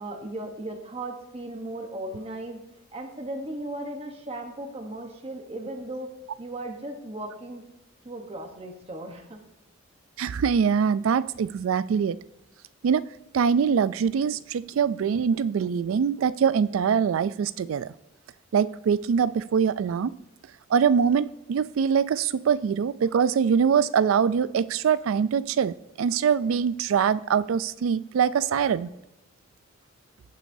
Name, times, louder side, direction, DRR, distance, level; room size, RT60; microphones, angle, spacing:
voice 1, 0.0-2.6 2.9-6.1 6.4-7.6 8.0-9.4, right 1 dB, 30° right, 4 dB, 1.0 m, -36 dB
voice 2, 10.2-12.2 12.8-13.1 13.3-17.9 18.5-20.2 20.7-28.9, right 7 dB, 85° right, 17 dB, 0.3 m, -23 dB
18.0 x 6.1 x 2.7 m, 0.88 s
head